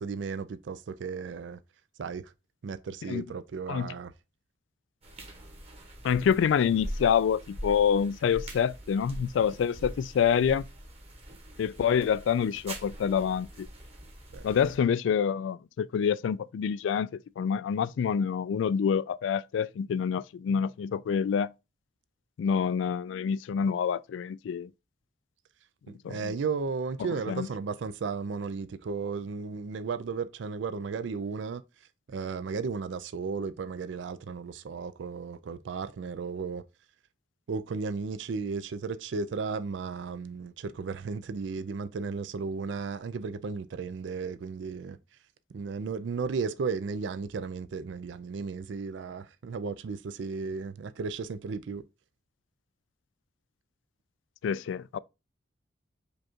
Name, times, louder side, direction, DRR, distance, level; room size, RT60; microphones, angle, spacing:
voice 1, 0.0-1.6 2.0-2.3 2.6-4.1 14.3-14.4 25.9-31.6 32.1-36.6 37.5-45.0 45.5-51.8, right 5 dB, 75° right, 0.4 m, -34 dB
sound 1, 5.0-14.8, equal, 35° right, 1.2 m, -43 dB
voice 2, 6.0-10.6 11.6-13.7 14.4-21.5 22.4-24.7 26.0-26.3 27.3-27.5 54.4-55.0, left 7 dB, 85° left, 0.3 m, -27 dB
5.1 x 2.4 x 4.3 m
head